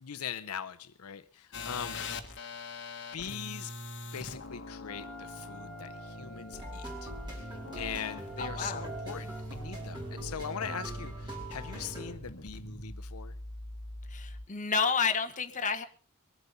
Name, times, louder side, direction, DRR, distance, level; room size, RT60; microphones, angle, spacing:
voice 1, 0.0-2.0 3.1-3.7 4.1-13.3, left 8 dB, 85° left, 0.7 m, -41 dB
sound 1, 1.5-14.5, left 1 dB, 55° left, 1.5 m, -43 dB
Wind instrument woodwind instrument, 4.8-9.5, right 2 dB, ahead, 1.0 m, -50 dB
sound 2, 6.5-12.2, right 1 dB, 20° right, 4.9 m, -43 dB
voice 2, 8.4-8.9 14.1-15.8, left 5 dB, 35° left, 1.3 m, -30 dB
22.5 x 8.1 x 5.5 m
head